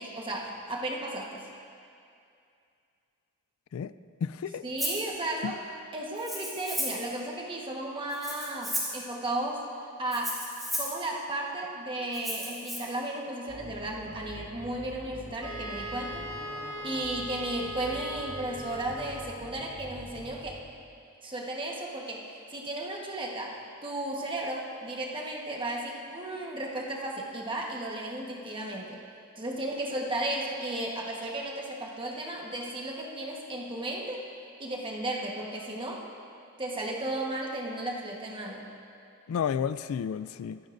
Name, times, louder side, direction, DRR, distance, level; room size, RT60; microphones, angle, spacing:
voice 1, 0.0-1.4 4.6-5.6 5.9-9.6 10.0-10.4 10.8-16.3 16.8-20.6 21.2-29.0 29.4-34.2 34.6-36.1 36.6-38.7, right 1 dB, 25° right, -1 dB, 1.3 m, -34 dB
voice 2, 4.2-4.6 5.4-5.5 39.3-40.6, left 7 dB, 75° left, 14 dB, 0.3 m, -31 dB
Rattle (instrument), 4.8-5.0 6.2-7.1 8.1-9.0 10.1-11.0 12.1-12.8, equal, ahead, 2.2 m, -34 dB
sound 1, 13.5-20.6, left 1 dB, 20° left, 1.1 m, -46 dB
Wind instrument woodwind instrument, 15.4-19.4, equal, 80° right, 1.3 m, -40 dB
24.0 x 9.3 x 2.6 m, 2.5 s
head